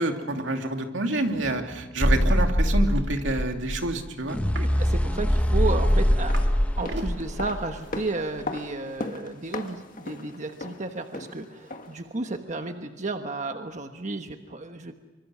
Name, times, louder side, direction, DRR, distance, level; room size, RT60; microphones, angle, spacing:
voice 1, 0.0-4.4, right 2 dB, 85° right, 4 dB, 2.6 m, -28 dB
sound 1, 2.0-8.1, equal, 10° left, 1.0 m, -23 dB
sound 2, 2.3-2.4 2.7-3.1 4.4-4.8 5.4-6.5 6.8-7.1 7.8-8.0, right 2 dB, 65° right, 2.3 m, -40 dB
voice 2, 4.6-6.4 6.8-14.9, right 3 dB, 40° right, 6 dB, 1.2 m, -33 dB
sound 3, 6.1-12.1 12.3-12.4, left 2 dB, 45° left, 1.7 m, -38 dB
25.5 x 24.0 x 6.2 m, 1.2 s
head